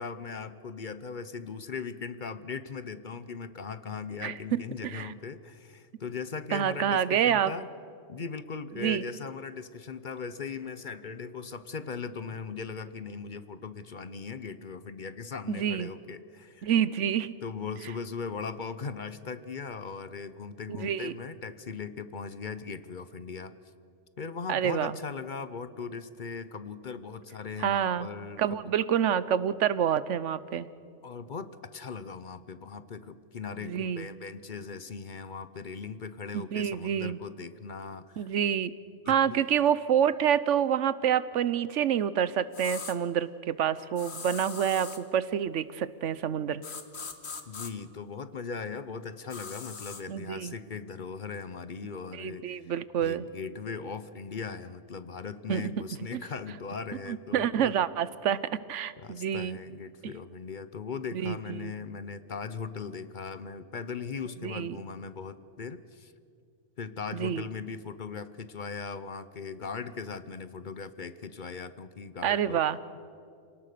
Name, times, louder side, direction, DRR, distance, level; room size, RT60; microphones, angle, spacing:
voice 1, 0.0-7.7 8.1-16.7 17.4-23.5 24.2-28.6 31.0-38.3 39.1-39.4 47.5-52.7 53.0-57.8 59.0-66.1 66.8-72.6, left 5 dB, 45° left, 13 dB, 0.8 m, -39 dB
voice 2, 4.8-5.1 6.5-7.5 8.8-9.0 15.5-15.9 16.6-17.4 20.7-21.1 24.5-24.9 27.6-28.1 28.4-30.7 33.6-34.1 36.3-37.2 38.2-38.7 39.1-46.6 50.1-50.5 52.2-53.2 55.5-55.7 57.1-58.4 58.7-59.6 61.1-61.7 64.4-64.8 67.1-67.4 72.2-72.8, right 9 dB, 85° right, 16 dB, 1.1 m, -27 dB
sound 1, 42.5-43.0 44.0-45.0 46.6-47.7 49.3-50.0, left 5 dB, 65° left, 1.6 m, -40 dB
28.0 x 18.5 x 6.7 m, 2.4 s
omnidirectional pair, 1.2 m